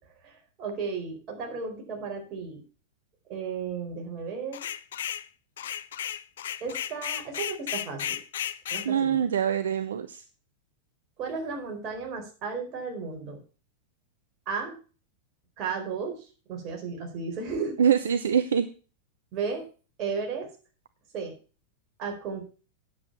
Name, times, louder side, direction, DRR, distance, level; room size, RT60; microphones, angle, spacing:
voice 1, 0.2-2.6 3.3-4.6 6.6-8.2 8.7-9.2 11.2-13.4 14.5-14.7 15.6-17.8 19.3-19.6 20.0-20.5 21.1-21.3 22.0-22.5, right 5 dB, 35° right, 1 dB, 4.4 m, -34 dB
sound 1, 4.5-5.3 5.6-8.9, left 10 dB, 60° left, 0.5 m, -34 dB
voice 2, 8.8-10.2 17.8-18.7, right 8 dB, 65° right, 11 dB, 0.6 m, -24 dB
9.7 x 7.7 x 5.7 m, 0.37 s
figure-of-eight pair, 90°, 0 cm